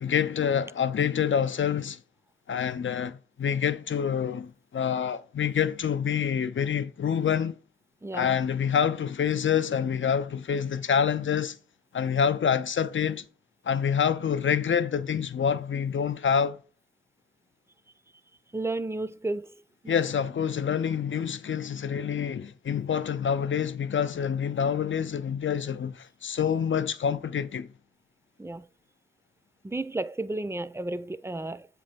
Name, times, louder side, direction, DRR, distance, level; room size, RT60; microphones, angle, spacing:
voice 1, 0.0-2.0 2.5-7.6 8.1-11.6 11.9-13.2 13.7-16.6 19.9-27.7, left 7 dB, 80° left, 0.5 m, -27 dB
voice 2, 8.0-8.4 18.5-19.5 19.8-20.0 28.4-28.7 29.6-31.7, right 2 dB, 15° right, 0.4 m, -32 dB
7.6 x 3.2 x 5.1 m
wide cardioid pair, 50°, 19 cm